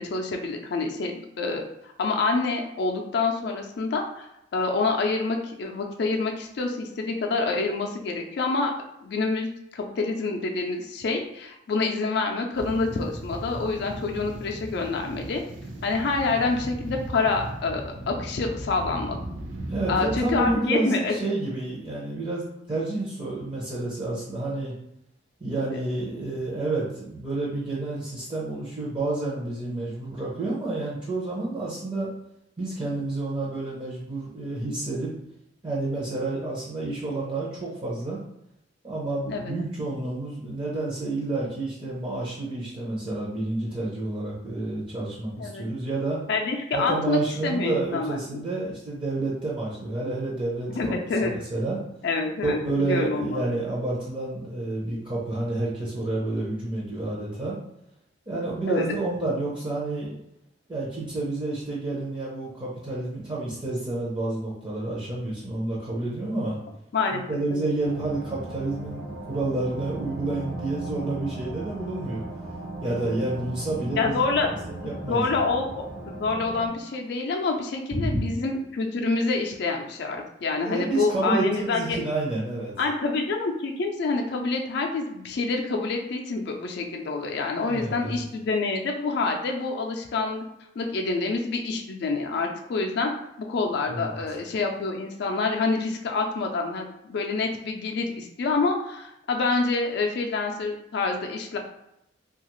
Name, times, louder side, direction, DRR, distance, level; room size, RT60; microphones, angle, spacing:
voice 1, 0.0-1.6 2.0-4.3 4.5-8.7 9.0-15.4 15.8-19.2 19.9-21.1 25.7-25.8 39.3-39.5 45.4-45.7 46.3-48.2 50.7-51.3 52.0-53.4 58.7-58.8 66.9-67.2 67.5-67.7 73.9-74.5 74.8-82.0 82.8-90.4 90.8-93.1 93.4-101.6, left 3 dB, 60° left, 2 dB, 0.4 m, -27 dB
sound 1, 12.5-20.5, right 1 dB, 85° right, 0.5 m, -37 dB
voice 2, 19.7-24.7 25.4-32.1 32.6-35.1 35.6-38.2 38.8-46.2 46.7-51.0 51.2-51.8 52.4-57.6 58.3-60.2 60.7-66.6 67.1-72.2 72.8-74.2 74.7-75.5 77.9-78.2 80.6-82.7 87.6-88.2 93.9-94.2, right 2 dB, 30° right, -5 dB, 0.6 m, -29 dB
sound 2, 67.8-76.7, right 2 dB, 65° right, 1.0 m, -37 dB
2.8 x 2.3 x 3.0 m, 0.81 s
head